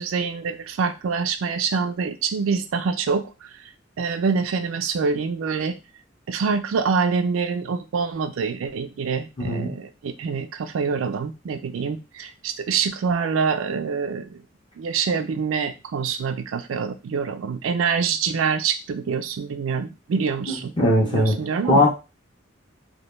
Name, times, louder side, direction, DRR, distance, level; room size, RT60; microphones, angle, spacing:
voice 1, 0.0-3.5 4.0-5.7 6.3-14.4 14.8-20.7 21.0-21.9, right 5 dB, 85° right, 9 dB, 0.4 m, -25 dB
voice 2, 9.4-9.7 20.8-21.4 21.6-21.9, left 1 dB, 25° left, -2 dB, 0.4 m, -19 dB
2.1 x 2.1 x 3.0 m, 0.29 s
head